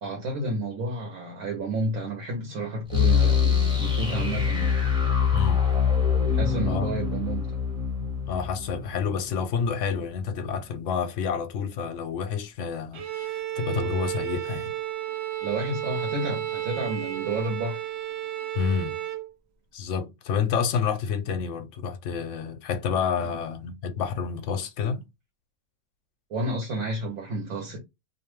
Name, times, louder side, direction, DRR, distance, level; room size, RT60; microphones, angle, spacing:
voice 1, 0.0-4.7 6.3-7.5 15.4-17.8 23.2-23.3 26.3-27.8, right 2 dB, 80° right, 1.2 m, -31 dB
sound 1, 2.9-9.7, left 7 dB, 5° right, 1.1 m, -24 dB
voice 2, 5.3-5.6 6.7-6.9 8.3-14.7 18.6-19.0 19.7-25.0, left 6 dB, 70° left, 0.9 m, -29 dB
Bowed string instrument, 12.9-19.3, right 12 dB, 65° right, 0.7 m, -32 dB
2.5 x 2.2 x 3.0 m
omnidirectional pair, 1.4 m